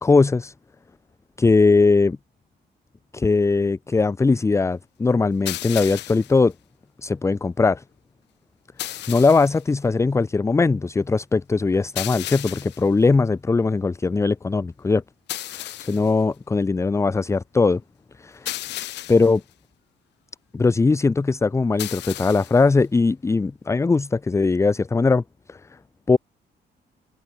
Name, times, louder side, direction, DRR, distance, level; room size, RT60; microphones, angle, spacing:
voice 1, 0.0-0.5 1.4-2.2 3.1-6.5 7.0-7.8 8.9-15.0 15.5-17.8 18.2-18.5 19.1-19.4 20.5-25.2 25.5-25.6 26.1-26.2, left 4 dB, 15° left, 0.8 m, -20 dB
sound 1, 5.5-6.4 8.8-9.6 12.0-12.9 15.3-16.1 18.5-19.4 21.8-22.6, left 14 dB, 85° left, 1.6 m, -33 dB
cardioid pair, 140°, 18 cm